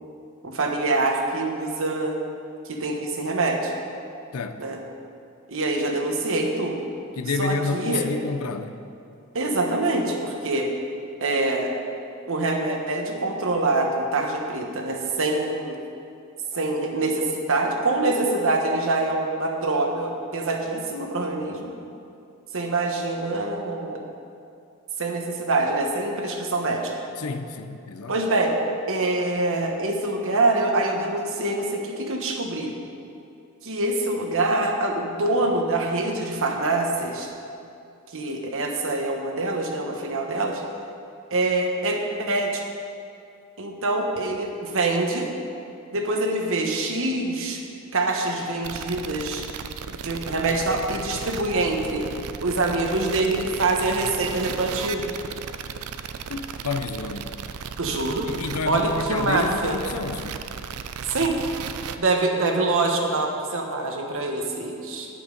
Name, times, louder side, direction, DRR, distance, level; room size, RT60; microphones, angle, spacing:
voice 1, 0.4-2.2 2.6-3.7 4.6-4.8 5.5-6.9 7.4-8.1 9.3-10.7 11.2-11.7 12.3-15.8 16.5-21.7 22.5-24.0 25.0-27.0 28.1-28.6 28.9-32.7 33.6-37.3 38.1-40.6 41.3-42.6 43.6-45.3 45.9-47.6 47.9-49.5 49.9-52.1 52.4-55.1 57.8-58.3 58.7-59.7 61.1-61.4 62.0-65.1, right 2 dB, 65° right, 2 dB, 1.2 m, -25 dB
voice 2, 7.2-8.8 27.2-28.2 56.3-57.3 58.3-60.4, left 4 dB, 85° left, 9 dB, 0.6 m, -29 dB
sound 1, 48.6-62.0, right 6 dB, 90° right, 0.5 m, -35 dB
9.8 x 8.4 x 5.3 m, 2.5 s
head